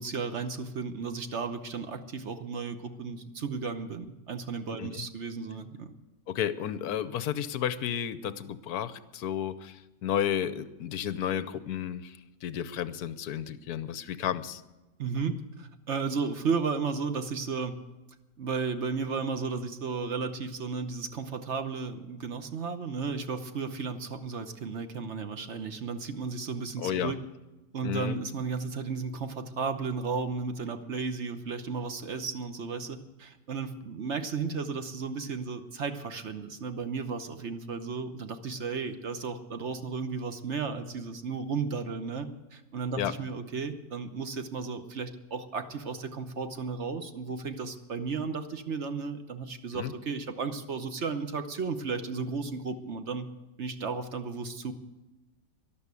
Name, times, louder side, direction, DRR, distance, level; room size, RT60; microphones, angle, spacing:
voice 1, 0.0-5.9 15.0-17.8 18.4-27.2 27.7-53.3 53.6-54.7, right 5 dB, 45° right, 9 dB, 1.0 m, -34 dB
voice 2, 6.3-14.6 26.8-27.1 27.8-28.2 43.0-43.1 49.7-49.9, left 9 dB, 65° left, 14 dB, 1.1 m, -32 dB
13.0 x 12.0 x 8.3 m, 1.1 s
omnidirectional pair, 2.1 m